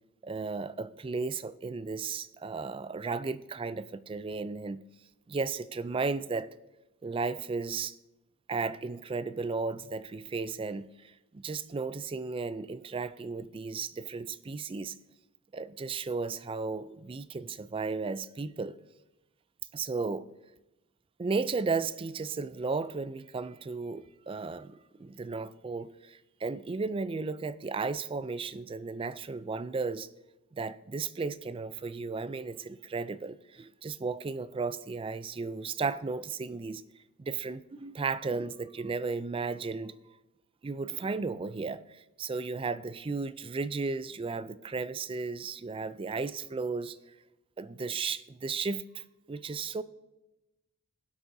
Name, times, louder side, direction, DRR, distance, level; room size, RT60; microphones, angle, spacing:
voice 1, 0.2-4.8 5.3-6.5 7.0-8.0 8.5-15.0 15.5-18.7 19.7-20.3 21.2-30.1 30.5-36.8 37.2-39.9 40.6-47.0 47.6-49.8, right 4 dB, 25° right, 0.3 m, -34 dB
17.5 x 8.2 x 2.7 m
head